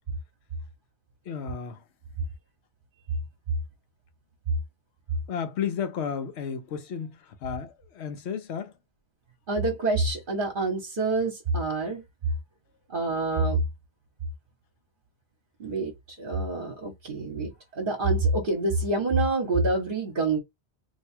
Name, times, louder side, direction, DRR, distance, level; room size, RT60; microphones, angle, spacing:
voice 1, 1.2-1.9 5.3-8.8, left 7 dB, 70° left, 1.0 m, -33 dB
voice 2, 9.5-12.0 12.9-13.6 15.6-20.4, right 2 dB, 50° right, 1.0 m, -26 dB
2.8 x 2.2 x 4.2 m
omnidirectional pair, 1.2 m